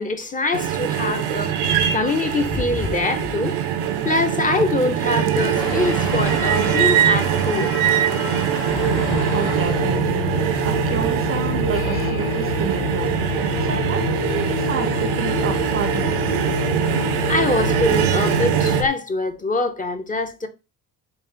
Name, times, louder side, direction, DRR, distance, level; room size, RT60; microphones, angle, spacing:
voice 1, 0.0-1.6 1.9-3.6 4.0-7.7 17.3-20.5, left 2 dB, 20° left, 0.6 m, -23 dB
sound 1, 0.5-18.8, right 10 dB, 90° right, 0.7 m, -22 dB
Motor vehicle (road) / Engine starting / Accelerating revving vroom, 5.5-11.4, left 4 dB, 75° left, 1.2 m, -33 dB
sound 2, 8.7-18.9, left 6 dB, 55° left, 1.4 m, -27 dB
voice 2, 9.3-13.2 13.6-16.3, right 7 dB, 35° right, 0.5 m, -29 dB
3.9 x 2.5 x 3.8 m
cardioid pair, 95°, 38 cm